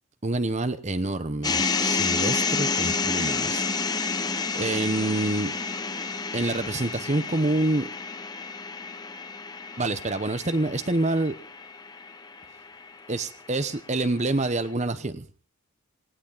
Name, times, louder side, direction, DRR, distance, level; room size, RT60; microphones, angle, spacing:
voice 1, 0.2-3.6 4.5-5.5 6.3-7.9 9.8-11.3 13.1-15.2, right 2 dB, 30° right, 12 dB, 1.0 m, -27 dB
sound 1, 1.4-13.6, left 4 dB, 20° left, 0.9 m, -30 dB
19.0 x 17.5 x 4.0 m, 0.36 s
head